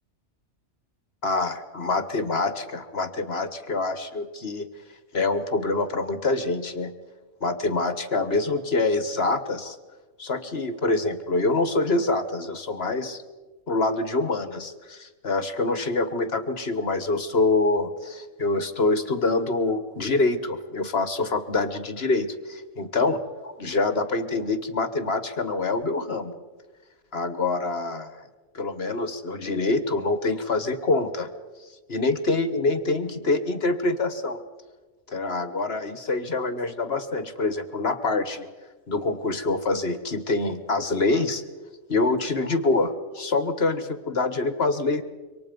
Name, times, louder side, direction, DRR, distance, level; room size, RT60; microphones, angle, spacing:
voice 1, 1.2-4.7 5.1-6.9 7.4-9.8 10.2-13.2 13.7-26.4 27.1-28.1 28.5-31.3 31.9-34.4 35.1-38.5 38.9-41.4 41.9-45.0, left 3 dB, 50° left, 11 dB, 1.7 m, -25 dB
27.0 x 24.5 x 5.3 m, 1.3 s
omnidirectional pair, 1.4 m